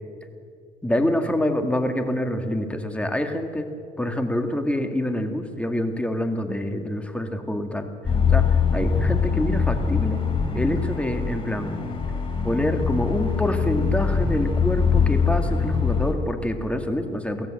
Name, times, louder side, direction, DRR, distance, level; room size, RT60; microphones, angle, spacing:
voice 1, 0.8-3.7 4.0-7.9 8.3-10.2 10.5-11.8 12.4-17.5, left 1 dB, 5° left, 6 dB, 2.1 m, -26 dB
sound 1, 8.0-16.1, left 6 dB, 30° left, 3.9 m, -23 dB
23.5 x 16.0 x 7.7 m, 2.3 s
cardioid pair, 110°, 17 cm